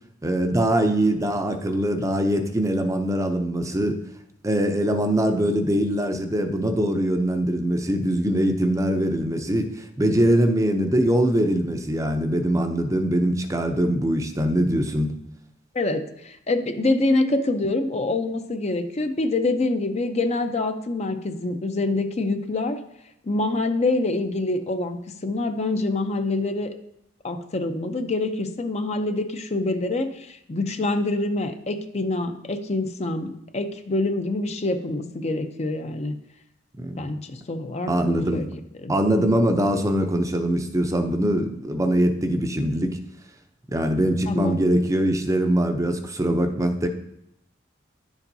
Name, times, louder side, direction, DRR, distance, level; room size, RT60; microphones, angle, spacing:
voice 1, 0.2-4.0 4.4-15.2 36.8-37.1 37.9-38.4 38.9-43.0 43.7-46.9, right 1 dB, 15° right, 6 dB, 0.6 m, -22 dB
voice 2, 15.7-22.8 23.2-26.7 27.2-36.2 37.0-38.9 44.3-44.6, left 2 dB, 35° left, 7 dB, 0.6 m, -26 dB
11.0 x 7.1 x 2.7 m, 0.80 s
head